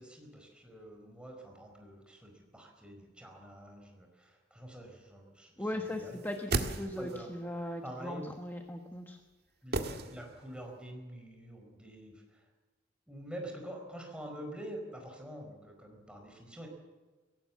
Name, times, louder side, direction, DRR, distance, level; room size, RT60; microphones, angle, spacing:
voice 1, 0.0-6.2 7.0-7.3 7.8-8.2 9.6-9.8 10.1-12.5 13.1-16.7, right 1 dB, 5° right, 2 dB, 4.7 m, -46 dB
voice 2, 5.6-9.2, left 1 dB, 10° left, 4 dB, 1.2 m, -39 dB
sound 1, 6.1-7.3 9.7-10.6 10.9-11.0, right 2 dB, 60° right, 1.7 m, -35 dB
23.0 x 17.5 x 7.4 m, 1.4 s
head